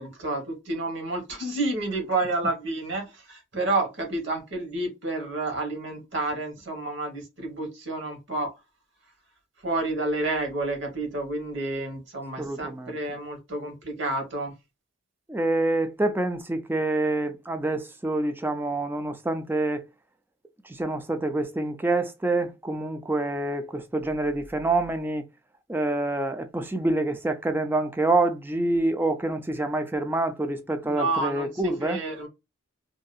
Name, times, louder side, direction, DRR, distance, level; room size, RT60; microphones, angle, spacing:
voice 1, 0.0-8.5 9.6-14.5 30.8-32.3, right 2 dB, 60° right, 1.2 m, -30 dB
voice 2, 12.4-13.0 15.3-19.8 20.6-25.2 25.7-32.0, right 2 dB, 10° right, 0.3 m, -27 dB
2.7 x 2.3 x 2.5 m
head